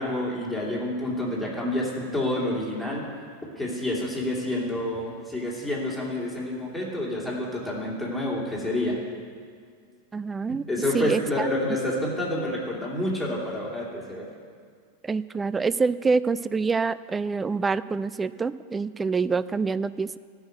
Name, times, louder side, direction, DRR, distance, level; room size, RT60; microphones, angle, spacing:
voice 1, 0.0-3.1 3.5-9.0 10.7-14.3, left 1 dB, ahead, -5 dB, 3.0 m, -28 dB
voice 2, 10.1-10.7 10.9-11.5 15.0-20.2, right 4 dB, 15° right, 16 dB, 0.3 m, -26 dB
13.5 x 6.2 x 7.9 m, 2.1 s
figure-of-eight pair, 90°, 0 cm